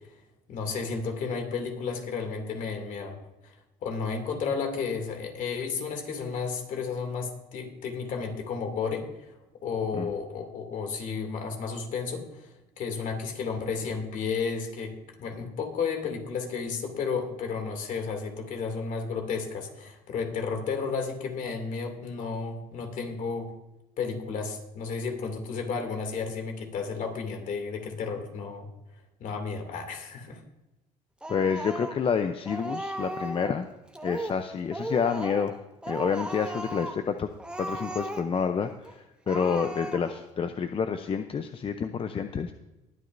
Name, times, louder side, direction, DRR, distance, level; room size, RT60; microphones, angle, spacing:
voice 1, 0.5-3.2 3.4-3.5 3.8-9.3 9.6-23.5 24.0-28.7 29.2-30.4, left 5 dB, 60° left, 4 dB, 2.7 m, -32 dB
Speech, 31.2-32.1 32.5-33.6 33.9-34.4 34.7-35.6 35.8-37.0 37.4-38.5 38.8-38.9 39.3-40.3, right 1 dB, 5° right, 1.4 m, -36 dB
voice 2, 31.3-33.7 34.0-35.5 35.9-37.3 37.6-42.5, left 6 dB, 40° left, 8 dB, 0.7 m, -28 dB
21.5 x 9.3 x 2.7 m, 1.0 s
supercardioid pair, 85°, 15 cm